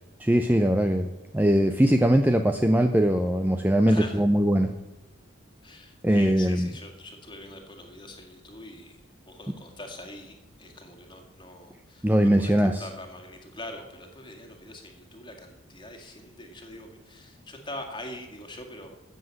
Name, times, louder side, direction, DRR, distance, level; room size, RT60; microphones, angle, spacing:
voice 1, 0.2-1.1 1.3-4.7 6.0-6.7 12.0-12.9, equal, 10° right, 6 dB, 0.5 m, -21 dB
voice 2, 3.9-4.2 5.6-9.0 9.3-18.9, left 1 dB, 20° left, 3 dB, 2.0 m, -43 dB
13.5 x 7.9 x 7.7 m, 1.1 s
head